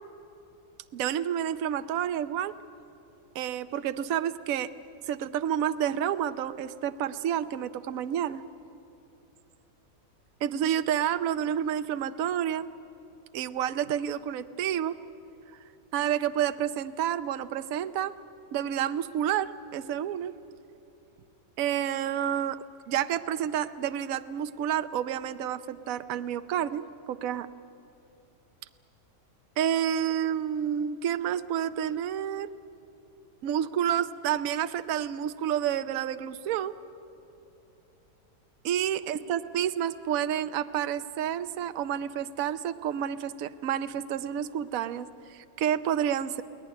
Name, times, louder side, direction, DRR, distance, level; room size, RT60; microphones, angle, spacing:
voice 1, 0.9-2.5 3.3-4.7 5.1-8.4 10.4-12.7 13.3-15.0 15.9-18.1 18.5-20.3 21.6-27.5 29.6-32.5 33.4-36.8 38.6-46.4, right 10 dB, 65° right, 11 dB, 1.0 m, -29 dB
22.0 x 17.5 x 9.9 m, 2.9 s
omnidirectional pair, 1.8 m